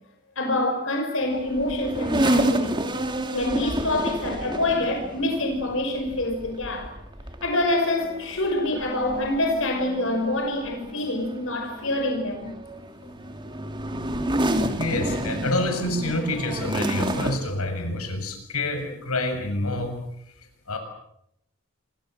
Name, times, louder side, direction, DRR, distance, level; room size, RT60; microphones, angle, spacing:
voice 1, 0.4-2.9 3.3-6.9 7.4-12.5, left 1 dB, 65° left, 6.2 m, -26 dB
sound 1, 1.3-17.4, right 1 dB, 20° right, 2.4 m, -30 dB
voice 2, 14.8-20.0 20.7-20.8, left 1 dB, 90° left, 6.7 m, -27 dB
28.5 x 24.5 x 7.8 m
head